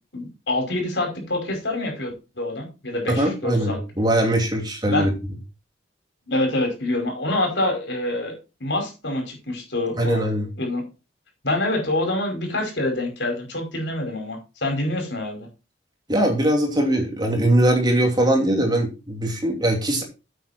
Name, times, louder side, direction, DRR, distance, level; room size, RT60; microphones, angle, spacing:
voice 1, 0.1-3.8 4.8-5.1 6.3-8.4 8.6-10.3 10.6-10.8 11.4-15.5, left 2 dB, 70° left, 3 dB, 5.4 m, -26 dB
voice 2, 3.1-5.1 10.0-10.5 16.1-20.0, right 1 dB, 25° right, 2 dB, 2.9 m, -21 dB
9.6 x 8.3 x 4.4 m, 0.30 s
head